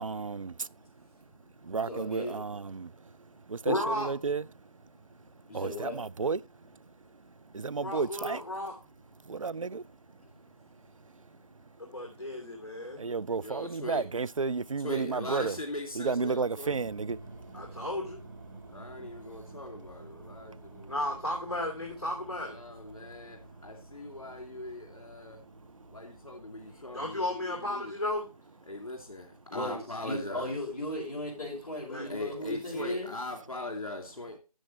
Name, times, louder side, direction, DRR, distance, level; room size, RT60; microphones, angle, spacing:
voice 1, 0.0-0.5 1.6-3.1 3.5-4.4 5.5-6.4 7.5-8.4 9.3-9.8 13.0-15.6 16.0-17.2, right 4 dB, 60° right, 0.4 m, -32 dB
voice 2, 1.9-2.3 5.5-6.0 29.5-33.1, left 1 dB, 25° left, 4.6 m, -36 dB
voice 3, 3.6-4.1 7.8-8.8 11.8-13.0 17.5-18.2 20.9-22.6 26.7-28.2 31.9-32.1, left 1 dB, 40° left, 2.5 m, -34 dB
voice 4, 13.4-14.0 14.8-16.8 18.7-21.2 22.4-25.4 25.9-27.9 28.7-30.5 32.1-34.4, left 2 dB, 65° left, 2.8 m, -40 dB
sound 1, 16.6-27.4, right 2 dB, 35° right, 1.5 m, -50 dB
12.5 x 7.5 x 3.1 m
figure-of-eight pair, 170°, 19 cm